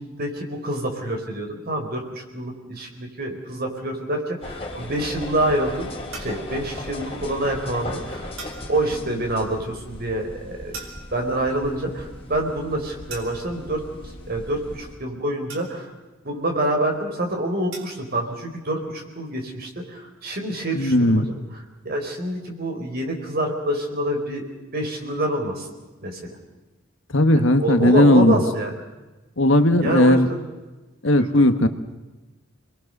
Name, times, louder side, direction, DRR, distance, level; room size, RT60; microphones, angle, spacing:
voice 1, 0.0-5.9 6.2-8.3 8.7-10.8 11.1-13.8 14.3-15.9 16.2-21.2 21.5-24.5 24.7-25.7 26.0-26.3 27.3-28.7 29.7-30.4 31.1-31.5, right 1 dB, 45° right, 2 dB, 4.5 m, -27 dB
sound 1, 4.4-15.0, left 1 dB, 30° left, 4.0 m, -37 dB
sound 2, 6.1-6.5 8.4-8.7 10.7-11.3 13.1-13.6 15.5-16.0 17.7-18.1, right 4 dB, 70° right, 4.0 m, -39 dB
voice 2, 20.7-21.3 27.1-28.4 29.4-30.3 31.0-31.7, left 1 dB, 65° left, 9 dB, 1.3 m, -16 dB
28.0 x 21.5 x 6.6 m, 1.1 s
head